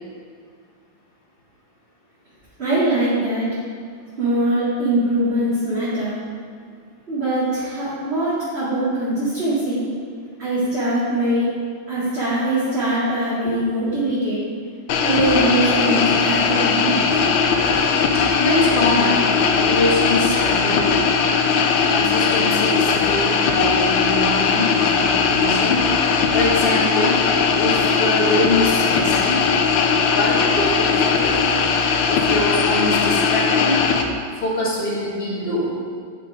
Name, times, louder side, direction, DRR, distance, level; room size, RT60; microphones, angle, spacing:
voice 1, 2.6-3.5 4.2-6.2 7.1-9.9 10.4-11.5 11.9-14.4 15.0-17.0 24.8-24.9 27.8-27.9, right 1 dB, 35° right, -12 dB, 2.3 m, -22 dB
sound 1, 14.9-34.0, left 5 dB, 90° left, 1.4 m, -19 dB
voice 2, 18.4-21.0 21.9-25.9 26.3-27.2 27.5-29.4 30.0-31.3 32.1-33.8 34.4-35.7, left 1 dB, 30° left, -5 dB, 1.8 m, -24 dB
9.6 x 5.2 x 4.9 m, 2.1 s
omnidirectional pair, 2.1 m